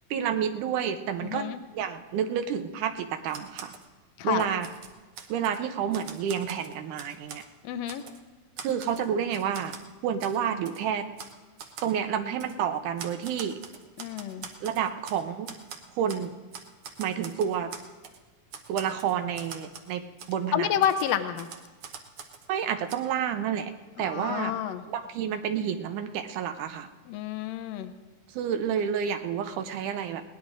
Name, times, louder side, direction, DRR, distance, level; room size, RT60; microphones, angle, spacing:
voice 1, 0.1-3.7 4.2-4.7 5.3-7.4 8.6-9.7 10.0-11.1 11.8-13.6 14.6-15.5 16.0-16.3 17.0-17.7 18.7-20.0 20.3-20.7 22.5-23.7 24.0-24.5 24.9-26.9 28.3-30.2, right 8 dB, 90° right, 7 dB, 2.3 m, -29 dB
voice 2, 1.2-1.6 4.2-4.5 7.6-8.0 14.0-14.5 20.5-21.5 24.0-24.8 27.1-27.9, left 10 dB, 80° left, 9 dB, 1.6 m, -29 dB
Typewriter, 3.3-3.9 4.3-5.6 5.9-7.5 7.9-8.2 8.6-9.9 10.2-10.4 10.7-10.8 11.2-11.3 11.6-11.9 12.4-12.6 13.0-15.2 15.5-16.3 16.5-18.2 18.5-19.9 20.2-20.3 20.8-22.5 22.9-23.0, right 6 dB, 65° right, 1.5 m, -43 dB
21.5 x 18.0 x 2.5 m, 1.3 s
omnidirectional pair, 3.5 m